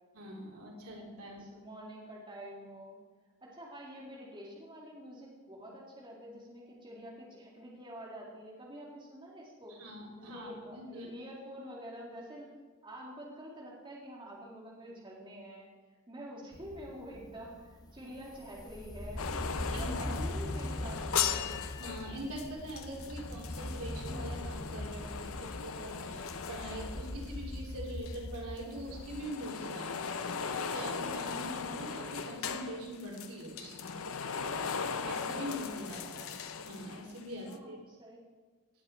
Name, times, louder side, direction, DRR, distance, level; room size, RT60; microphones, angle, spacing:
voice 1, 0.1-1.5 9.8-11.1 19.7-19.9 21.8-33.9 35.0-36.3 36.6-37.8, equal, 85° right, -2 dB, 3.5 m, -43 dB
voice 2, 1.3-3.0 3.4-9.8 10.1-12.5 12.8-15.7 16.1-19.3 19.8-21.6 36.1-36.3 37.4-38.2, equal, 20° right, -4 dB, 2.4 m, -47 dB
sound 1, 16.5-29.2, left 1 dB, 15° left, 0.7 m, -41 dB
sound 2, 19.2-27.8 28.1-37.2 37.5-37.6, left 6 dB, 75° left, 0.7 m, -38 dB
18.0 x 8.7 x 4.5 m, 1.4 s
head